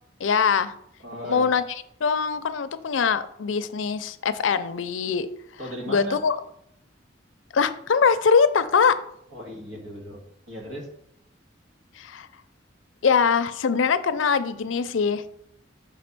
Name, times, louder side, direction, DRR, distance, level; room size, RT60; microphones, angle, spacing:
voice 1, 0.2-0.7 1.3-1.6 2.0-5.3 5.9-6.4 7.5-9.0 12.0-12.3 13.0-15.3, left 6 dB, 90° left, 13 dB, 0.5 m, -22 dB
voice 2, 1.0-1.5 5.6-6.2 9.3-10.2 10.5-10.9, equal, 90° right, 0 dB, 1.9 m, -36 dB
5.6 x 4.2 x 6.0 m, 0.72 s
head